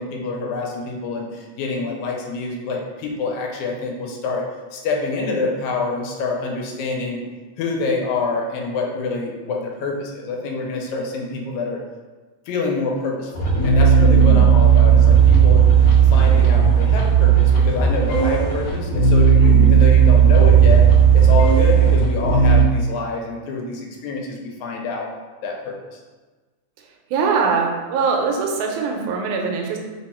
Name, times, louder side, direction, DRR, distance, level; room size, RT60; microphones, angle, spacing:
voice 1, 0.0-4.4 4.7-7.2 7.6-11.8 12.5-15.6 16.0-20.9 21.1-25.1 25.4-26.0, left 3 dB, 90° left, 0 dB, 2.0 m, -26 dB
sound 1, 13.3-22.6, right 7 dB, 60° left, 1.7 m, -14 dB
voice 2, 14.0-14.5 19.4-19.8 27.1-29.8, right 5 dB, 85° right, 2 dB, 2.0 m, -22 dB
4.6 x 2.3 x 4.2 m, 1.3 s
omnidirectional pair, 3.3 m